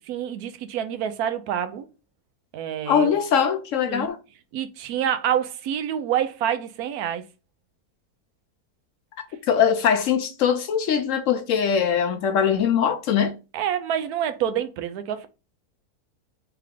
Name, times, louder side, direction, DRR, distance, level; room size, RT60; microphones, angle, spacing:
voice 1, 0.1-1.9 2.5-3.2 3.9-4.1 4.5-7.2 13.5-15.3, right 9 dB, 80° right, 1.1 m, -27 dB
voice 2, 2.9-4.2 9.5-13.3, left 7 dB, 70° left, 0.8 m, -21 dB
3.4 x 3.3 x 3.5 m
omnidirectional pair, 1.6 m